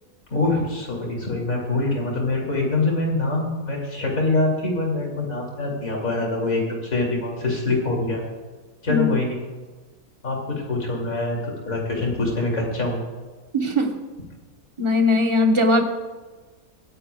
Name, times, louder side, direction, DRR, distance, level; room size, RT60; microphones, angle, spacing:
voice 1, 0.3-8.2 8.8-9.4 10.2-13.0, left 2 dB, 75° left, -1 dB, 3.0 m, -24 dB
voice 2, 13.5-13.9 14.8-15.8, left 2 dB, 25° right, 3 dB, 1.0 m, -19 dB
24.0 x 10.0 x 2.3 m, 1.3 s
omnidirectional pair, 1.4 m